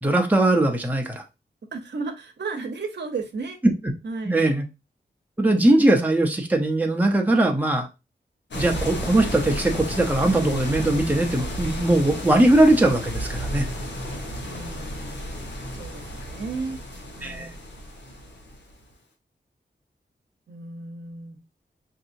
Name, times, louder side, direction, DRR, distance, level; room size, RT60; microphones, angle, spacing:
voice 1, 0.0-1.2 4.2-4.7 5.4-7.9 8.5-13.7 17.2-17.5, right 1 dB, 10° right, 0.7 m, -20 dB
voice 2, 1.7-3.6 4.0-4.4 14.4-16.8 17.1-17.6 20.5-21.4, right 4 dB, 75° right, 0.8 m, -34 dB
sound 1, 8.5-18.9, equal, 85° left, 1.2 m, -32 dB
5.4 x 2.8 x 2.6 m
wide cardioid pair, 110°, 18 cm